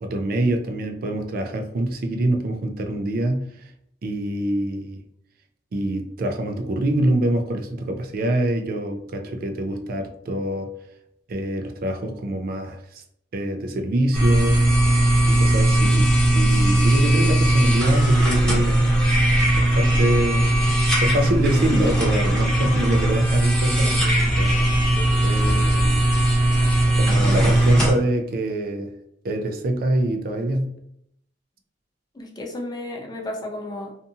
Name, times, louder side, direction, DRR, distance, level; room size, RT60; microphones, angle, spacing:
voice 1, 0.0-3.7 4.0-5.0 5.7-10.7 11.3-13.0 13.3-14.6 15.3-18.9 19.6-20.5 21.0-24.0 24.3-24.6 25.2-25.9 26.9-28.9 29.2-30.7, right 1 dB, 55° right, 0.4 m, -25 dB
sound 1, 14.1-27.9, right 1 dB, 5° left, 0.9 m, -19 dB
voice 2, 23.8-24.3 25.0-25.1 25.4-25.8 32.1-34.0, left 1 dB, 20° left, 0.5 m, -34 dB
2.6 x 2.4 x 2.7 m
head